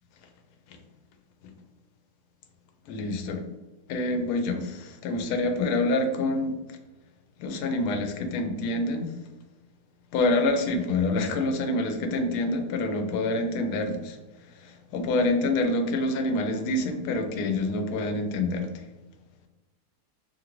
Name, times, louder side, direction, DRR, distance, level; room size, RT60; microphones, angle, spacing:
voice 1, 2.9-3.4 3.9-6.5 7.4-9.1 10.1-14.2 14.6-18.7, left 2 dB, 75° left, 5 dB, 1.0 m, -27 dB
2.8 x 2.6 x 2.9 m, 1.1 s
omnidirectional pair, 1.9 m